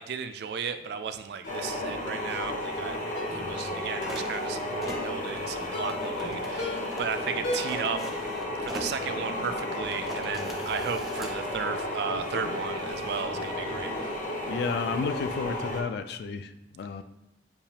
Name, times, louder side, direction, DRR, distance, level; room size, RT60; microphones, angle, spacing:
voice 1, 0.0-3.0 3.3-8.1 8.6-14.1, right 6 dB, 65° right, 10 dB, 0.3 m, -35 dB
Ringtone, 1.4-1.7 2.3-2.5 3.2-3.4 4.0-4.3 4.9-5.2 5.7-6.1 6.6-7.0 7.4-7.9 8.2-8.3, left 1 dB, 80° left, 1.1 m, -36 dB
sound 1, 1.5-15.8, left 1 dB, 45° left, 0.7 m, -33 dB
sound 2, 4.0-11.4, equal, ahead, 0.5 m, -44 dB
voice 2, 14.5-17.0, left 4 dB, 65° left, 10 dB, 0.3 m, -32 dB
6.8 x 2.4 x 2.8 m, 0.88 s
head